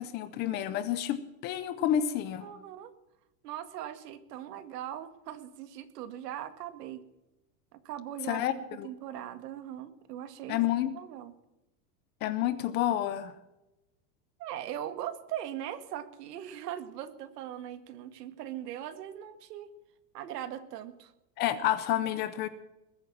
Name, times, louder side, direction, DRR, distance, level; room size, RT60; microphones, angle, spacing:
voice 1, 0.0-2.5 8.3-8.9 10.5-10.9 12.2-13.3 21.4-22.5, left 11 dB, 20° left, 14 dB, 0.5 m, -29 dB
voice 2, 2.4-2.9 3.4-7.0 7.7-8.4 8.7-10.6 10.9-11.3 14.4-19.7 20.1-21.1, right 11 dB, 85° right, 11 dB, 2.0 m, -40 dB
21.0 x 8.9 x 7.3 m, 0.95 s
supercardioid pair, 170°, 47 cm